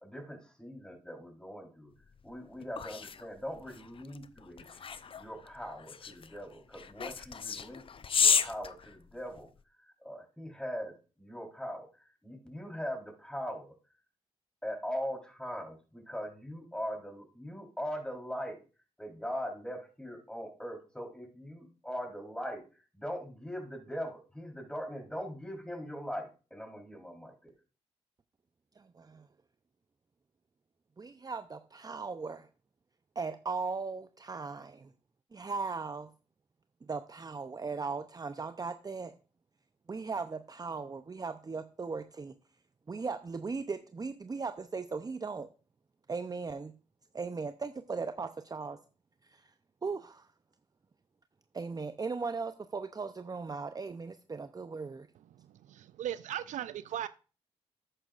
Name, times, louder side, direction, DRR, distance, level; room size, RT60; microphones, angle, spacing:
voice 1, 0.0-1.9 2.2-4.9 5.2-7.8 8.1-9.5 9.8-13.7 14.6-18.6 19.0-27.3, equal, 5° left, 2 dB, 3.8 m, -41 dB
sound 1, 2.1-9.6, left 6 dB, 45° left, 0.6 m, -33 dB
voice 2, 28.8-29.3 31.0-32.5 33.2-34.9 35.3-36.1 36.9-39.1 39.9-42.3 42.9-45.5 46.1-46.7 47.1-48.8 49.2-49.5 49.8-50.3 51.5-55.1, right 4 dB, 30° right, 9 dB, 0.6 m, -38 dB
voice 3, 55.7-57.1, right 11 dB, 70° right, 15 dB, 0.4 m, -37 dB
11.5 x 8.9 x 2.5 m, 0.35 s
supercardioid pair, 50°, 13 cm